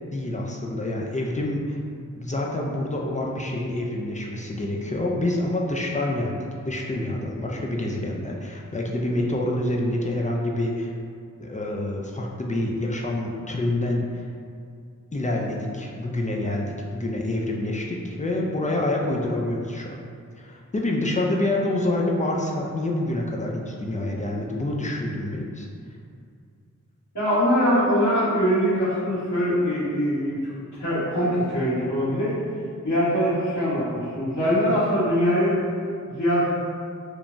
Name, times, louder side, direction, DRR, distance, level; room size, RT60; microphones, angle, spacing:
voice 1, 0.1-1.8 2.1-6.4 6.6-10.9 11.4-14.2 15.1-19.9 20.4-25.7, left 1 dB, 25° left, -2 dB, 0.3 m, -27 dB
voice 2, 27.1-30.5 30.8-32.3 32.8-35.6 36.1-36.5, equal, 60° left, -17 dB, 1.4 m, -22 dB
3.0 x 2.1 x 2.5 m, 2.3 s
wide cardioid pair, 45°, 32 cm